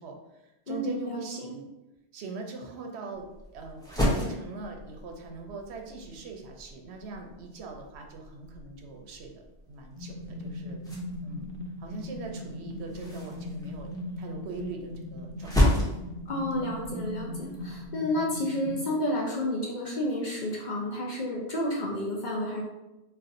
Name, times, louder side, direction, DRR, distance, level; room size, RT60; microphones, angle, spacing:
voice 1, 0.0-1.7 2.1-3.3 3.5-15.8 16.5-16.7, right 4 dB, 75° right, 3 dB, 0.8 m, -41 dB
voice 2, 0.7-1.6 16.3-22.6, left 1 dB, 55° left, -2 dB, 0.6 m, -31 dB
sound 1, 3.1-17.9, left 1 dB, 5° left, 0.5 m, -34 dB
sound 2, 10.0-18.9, left 1 dB, 80° left, 0.9 m, -39 dB
4.1 x 2.3 x 2.5 m, 0.98 s
omnidirectional pair, 1.1 m